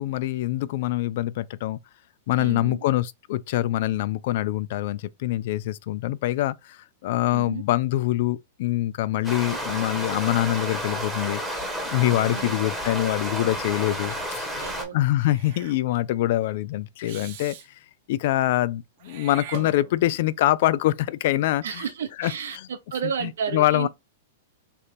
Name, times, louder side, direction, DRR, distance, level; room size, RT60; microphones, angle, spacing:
voice 1, 0.0-1.8 2.3-11.4 11.9-14.7 14.9-17.6 18.1-21.8 22.2-22.7 23.2-23.9, left 15 dB, 60° left, 0.3 m, -25 dB
voice 2, 2.4-2.8 7.3-7.6 12.1-12.5 14.6-15.0 21.6-23.9, right 7 dB, 85° right, 1.0 m, -32 dB
sound 1, 9.2-14.8, equal, ahead, 1.2 m, -31 dB
Meow / Hiss, 15.2-15.8 17.0-17.7 19.0-20.2, right 9 dB, 55° right, 0.9 m, -41 dB
3.4 x 2.5 x 4.2 m
hypercardioid pair, 135°, 0 cm